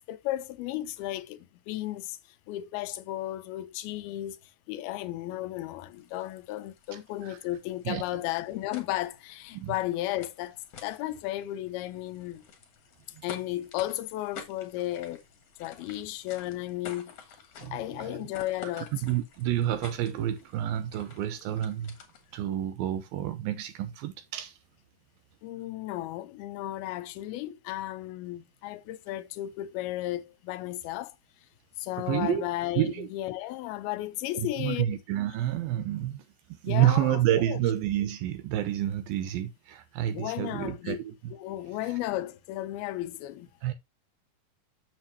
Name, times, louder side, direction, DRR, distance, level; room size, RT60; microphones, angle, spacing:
voice 1, 0.1-2.2 2.5-4.4 4.7-12.4 13.2-15.2 15.6-17.1 17.7-19.0 25.4-31.2 31.8-34.9 36.6-37.7 40.1-41.0 41.3-43.5, left 15 dB, 80° left, 2.5 m, -34 dB
sound 1, 5.9-22.4, left 7 dB, 55° left, 2.0 m, -50 dB
voice 2, 17.6-18.2 18.8-21.9 22.3-24.6 32.1-32.5 32.8-33.1 34.3-36.2 36.5-41.1 43.6-43.7, right 12 dB, 75° right, 2.4 m, -29 dB
7.6 x 7.3 x 2.7 m
omnidirectional pair, 4.5 m